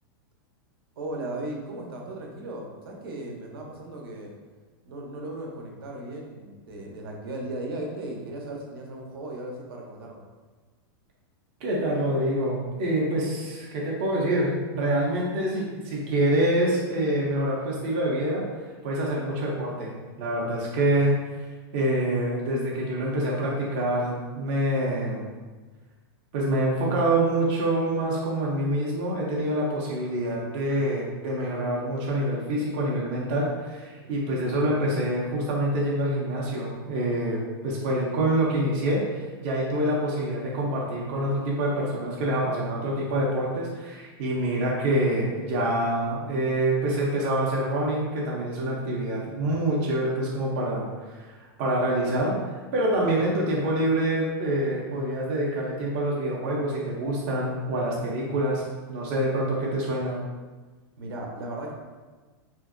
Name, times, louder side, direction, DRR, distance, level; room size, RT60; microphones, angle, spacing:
voice 1, 1.0-4.3 4.9-10.2 34.0-34.3 53.0-53.3 61.0-61.7, right 1 dB, 70° right, 0 dB, 0.6 m, -36 dB
voice 2, 11.6-18.4 18.8-21.1 21.7-25.3 26.3-39.0 39.4-52.4 52.7-58.6 58.9-60.2, right 1 dB, 30° right, -4 dB, 0.4 m, -26 dB
2.9 x 2.5 x 2.4 m, 1.3 s
supercardioid pair, 180°, 13 cm